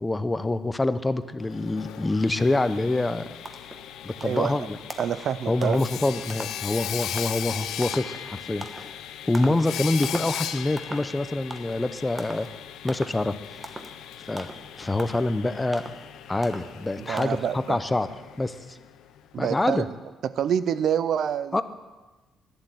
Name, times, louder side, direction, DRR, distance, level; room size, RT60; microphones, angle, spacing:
voice 1, 0.0-3.2 4.0-4.8 5.5-8.9 9.3-12.5 12.8-13.7 14.3-14.5 14.8-15.8 16.3-18.1 18.4-18.8 19.4-19.9 21.5-21.6, left 2 dB, 15° left, 12 dB, 0.7 m, -26 dB
Sawing, 1.4-19.2, left 10 dB, 85° left, 0.6 m, -38 dB
sound 1, 3.0-3.1 3.5-3.8 4.2-4.6 4.9-5.2 5.6-5.9 6.3-6.6 7.0-7.4 7.8-8.1 8.6-8.9 9.3-9.7 10.0-10.4 10.8-11.2 11.5-11.8 12.2-12.5 12.9-13.2 13.6-14.0 14.4-14.7 15.0-15.3 15.7-16.1 16.4-16.8 17.2-17.3, right 2 dB, 20° right, 1.2 m, -39 dB
voice 2, 4.2-4.6 5.0-5.8 17.0-17.8 19.3-19.9 20.2-21.6, right 9 dB, 65° right, 15 dB, 0.5 m, -27 dB
11.5 x 7.5 x 9.1 m, 1.2 s
cardioid pair, 90°, 0 cm